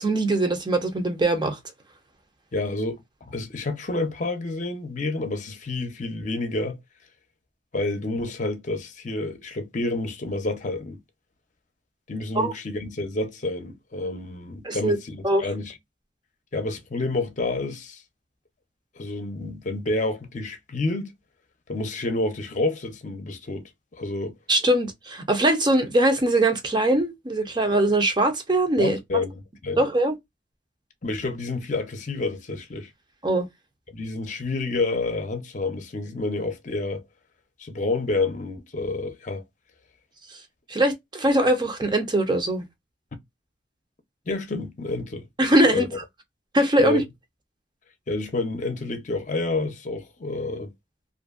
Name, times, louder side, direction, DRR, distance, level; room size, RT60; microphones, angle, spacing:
voice 1, 0.0-1.6 12.4-12.5 14.6-15.0 15.2-15.4 24.5-29.0 29.8-30.1 33.2-33.5 40.7-42.6 45.4-45.9 46.5-47.0, right 1 dB, 25° right, 0.6 m, -21 dB
voice 2, 2.5-6.8 7.7-11.0 12.1-15.7 16.5-18.0 19.0-21.1 21.7-24.4 28.8-29.9 31.0-32.9 33.9-37.0 37.6-39.4 44.3-45.3 45.6-45.9 46.8-47.0 48.1-50.7, left 2 dB, 45° left, 0.7 m, -29 dB
2.6 x 2.6 x 2.4 m
head